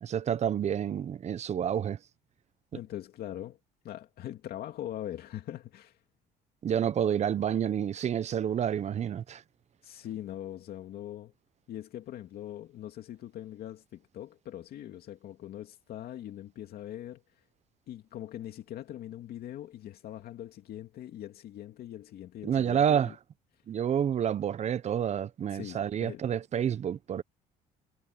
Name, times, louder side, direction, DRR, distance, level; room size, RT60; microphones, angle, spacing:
voice 1, 0.0-2.0 6.6-9.4 22.4-23.1 23.7-27.2, right 9 dB, 40° right, 0.7 m, -29 dB
voice 2, 2.7-3.6 3.8-6.0 9.8-11.3 11.7-17.2 17.9-23.2 25.5-26.2, left 12 dB, 65° left, 2.4 m, -42 dB
cardioid pair, 110°, 17 cm